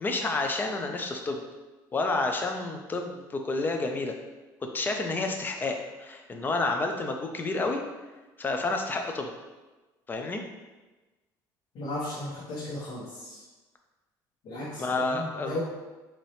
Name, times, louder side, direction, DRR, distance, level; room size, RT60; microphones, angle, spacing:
voice 1, 0.0-1.4 1.9-4.2 4.6-7.8 8.4-9.3 10.1-10.4 14.8-15.6, left 3 dB, 25° left, 4 dB, 0.5 m, -30 dB
voice 2, 11.7-13.4 14.4-15.6, left 1 dB, 60° left, -10 dB, 1.4 m, -36 dB
4.1 x 2.9 x 3.3 m, 1.2 s
cardioid pair, 115°, 8 cm